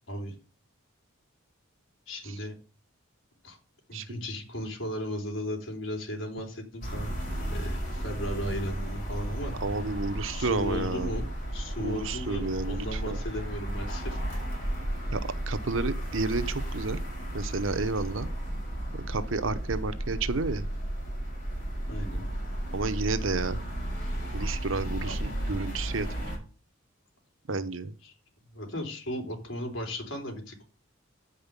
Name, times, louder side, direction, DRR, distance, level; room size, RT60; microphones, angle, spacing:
voice 1, 2.1-2.6 3.4-3.6 3.9-7.1 7.5-9.5 10.3-11.3 11.5-14.2 21.9-22.2 25.1-25.2 28.0-28.1 28.5-30.6, equal, 65° left, 1 dB, 3.6 m, -36 dB
sound 1, 6.8-26.4, right 1 dB, 40° left, 5.4 m, -33 dB
voice 2, 9.6-11.2 11.8-13.2 15.1-15.2 15.5-17.0 17.3-18.3 18.9-20.7 22.7-23.6 24.3-26.1 27.5-27.9, right 3 dB, 70° right, 12 dB, 0.9 m, -31 dB
8.9 x 5.4 x 6.8 m, 0.36 s
head